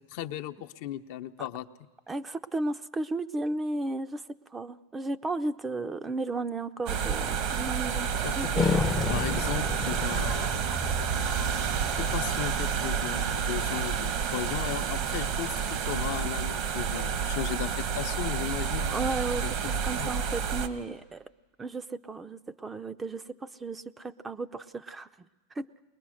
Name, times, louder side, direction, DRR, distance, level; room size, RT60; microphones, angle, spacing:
voice 1, 0.1-1.7 8.2-8.8 9.1-10.4 12.0-19.1 19.4-19.5 20.0-20.1, left 12 dB, 60° left, 7 dB, 0.7 m, -36 dB
voice 2, 2.1-4.2 4.5-8.1 8.4-8.9 18.9-21.2 21.6-25.1 25.6-25.7, right 2 dB, 20° right, 11 dB, 0.6 m, -34 dB
sound 1, 6.9-20.7, right 7 dB, 55° right, 1.3 m, -29 dB
sound 2, 8.6-13.1, left 6 dB, 25° left, 0.6 m, -33 dB
21.5 x 20.0 x 6.4 m, 1.3 s
hypercardioid pair, 100°, 0 cm